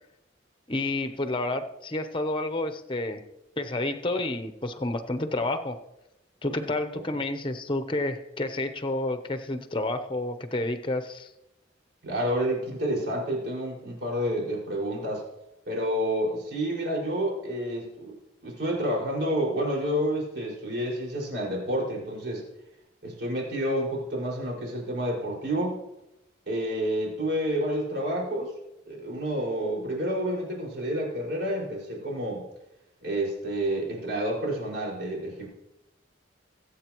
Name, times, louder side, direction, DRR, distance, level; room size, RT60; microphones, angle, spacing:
voice 1, 0.7-3.2 3.6-5.8 6.4-11.3, left 2 dB, 25° left, 7 dB, 0.8 m, -30 dB
voice 2, 12.0-15.2 15.7-18.1 18.4-22.4 23.0-25.8 26.5-28.5 28.9-32.5 33.0-35.5, equal, 65° right, -3 dB, 5.5 m, -29 dB
23.0 x 8.5 x 3.1 m, 0.89 s
head